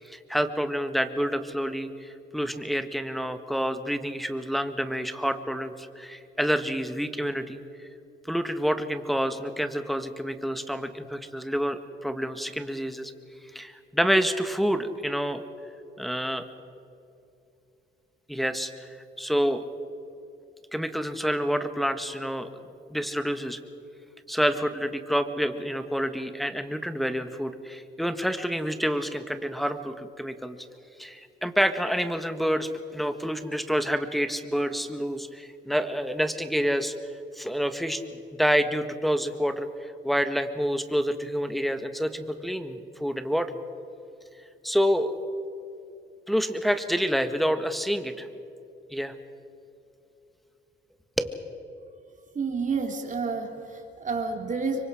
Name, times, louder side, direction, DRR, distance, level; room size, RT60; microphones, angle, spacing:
voice 1, 0.1-7.6 8.3-13.1 13.5-15.4 16.0-16.4 18.3-18.9 19.2-19.6 20.7-22.5 22.9-23.6 24.3-30.6 31.0-36.9 37.3-38.0 38.4-43.6 44.6-45.2 46.3-48.3 48.9-49.1 51.2-51.4, equal, ahead, 8 dB, 1.6 m, -28 dB
voice 2, 52.4-54.8, right 4 dB, 40° right, 3 dB, 3.4 m, -30 dB
26.0 x 23.5 x 5.0 m, 2.8 s
cardioid pair, 90°, 20 cm